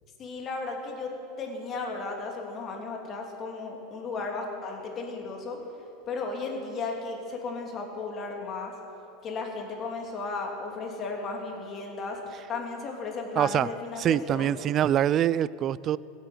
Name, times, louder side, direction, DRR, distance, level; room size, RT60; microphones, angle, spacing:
voice 1, 0.2-1.1 1.4-5.6 6.1-8.7 9.2-12.2 12.5-14.5, left 3 dB, 35° left, 1 dB, 3.0 m, -35 dB
voice 2, 13.4-13.7 14.0-16.0, right 10 dB, 40° right, 21 dB, 0.3 m, -24 dB
16.5 x 8.2 x 7.8 m, 2.8 s
hypercardioid pair, 90°, 0 cm